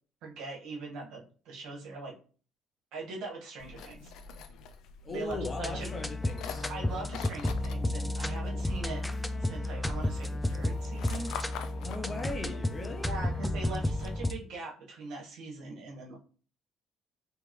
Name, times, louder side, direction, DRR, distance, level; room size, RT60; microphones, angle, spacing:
voice 1, 0.2-2.1 2.9-4.1 5.1-5.9 6.7-9.0 9.4-11.3 13.0-16.2, right 3 dB, 80° right, 1.7 m, -41 dB
sound 1, 3.6-14.2, left 7 dB, 75° left, 0.5 m, -47 dB
voice 2, 5.0-6.7 11.8-13.2, left 2 dB, 30° left, 0.8 m, -38 dB
sound 2, 5.3-14.3, left 1 dB, 10° left, 0.4 m, -32 dB
3.8 x 3.4 x 3.2 m
cardioid pair, 125°, 0 cm